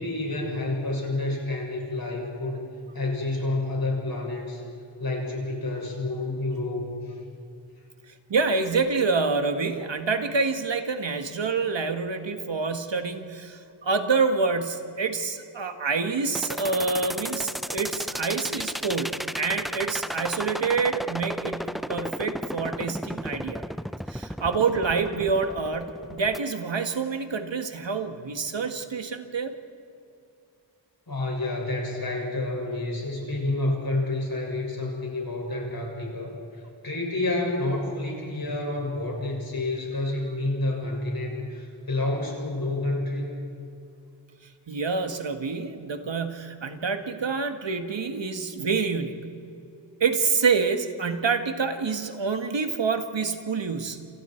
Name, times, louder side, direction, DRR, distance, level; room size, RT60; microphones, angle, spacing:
voice 1, 0.0-2.6 2.9-4.6 5.0-7.1 31.1-43.2, left 2 dB, 50° left, -1 dB, 6.7 m, -29 dB
voice 2, 8.3-23.6 24.1-29.5 44.7-49.3 50.0-54.1, right 4 dB, 70° right, 6 dB, 1.9 m, -27 dB
sound 1, 16.3-26.4, equal, ahead, 0.5 m, -33 dB
28.0 x 28.0 x 4.6 m, 2.6 s
wide cardioid pair, 90°, 45 cm